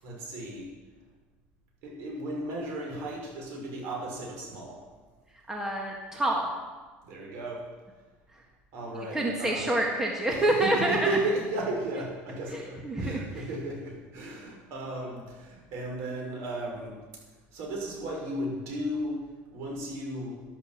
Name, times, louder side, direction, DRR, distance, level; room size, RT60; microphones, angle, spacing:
voice 1, 0.0-0.7 1.8-4.8 7.0-7.6 8.7-9.7 10.3-17.0 17.5-19.2 19.5-20.4, right 1 dB, 60° right, -1 dB, 6.2 m, -34 dB
voice 2, 5.5-6.5 9.1-11.0 12.5-13.2, right 1 dB, 10° right, 0 dB, 1.7 m, -27 dB
12.0 x 12.0 x 7.7 m, 1.3 s
cardioid pair, 155°, 5 cm